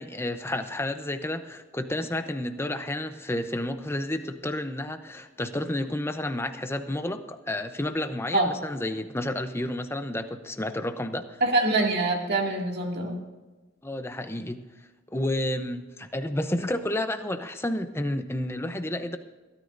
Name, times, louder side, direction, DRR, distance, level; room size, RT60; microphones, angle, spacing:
voice 1, 0.0-11.4 13.8-14.6 15.1-19.2, left 1 dB, 10° left, 8 dB, 0.7 m, -31 dB
voice 2, 11.4-13.2, right 2 dB, 50° right, 1 dB, 2.3 m, -24 dB
22.0 x 13.0 x 2.6 m, 1.2 s
head